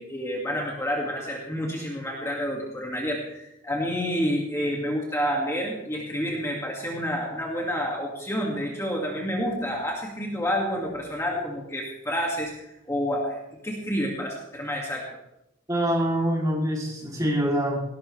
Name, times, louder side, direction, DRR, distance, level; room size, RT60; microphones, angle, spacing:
voice 1, 0.0-15.1, equal, 15° left, -2 dB, 2.2 m, -29 dB
voice 2, 15.7-17.8, equal, 15° right, -2 dB, 3.3 m, -25 dB
19.0 x 17.5 x 3.4 m, 0.85 s
head